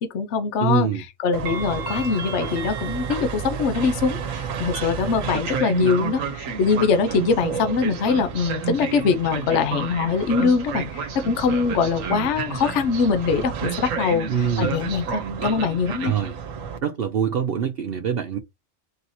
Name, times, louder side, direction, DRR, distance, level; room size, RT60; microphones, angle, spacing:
voice 1, 0.0-16.1, left 5 dB, 65° left, 1.0 m, -23 dB
voice 2, 0.6-1.0 14.3-14.8 16.0-16.3 16.8-18.4, right 8 dB, 55° right, 0.7 m, -24 dB
Train, 1.3-16.8, right 6 dB, 75° right, 1.2 m, -30 dB
3.9 x 2.8 x 4.2 m
omnidirectional pair, 1.4 m